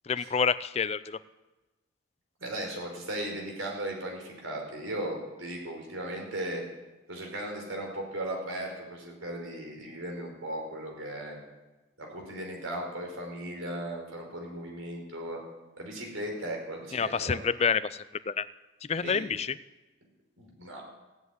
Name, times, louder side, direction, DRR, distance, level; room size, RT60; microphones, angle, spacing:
voice 1, 0.1-1.2 16.9-18.5 18.9-19.6, left 6 dB, 30° left, 15 dB, 0.4 m, -28 dB
voice 2, 2.4-6.6 7.1-11.4 12.0-15.4 15.8-17.4 19.0-19.2 20.4-20.8, right 1 dB, 90° right, 1 dB, 4.9 m, -37 dB
16.0 x 8.1 x 9.5 m, 1.1 s
head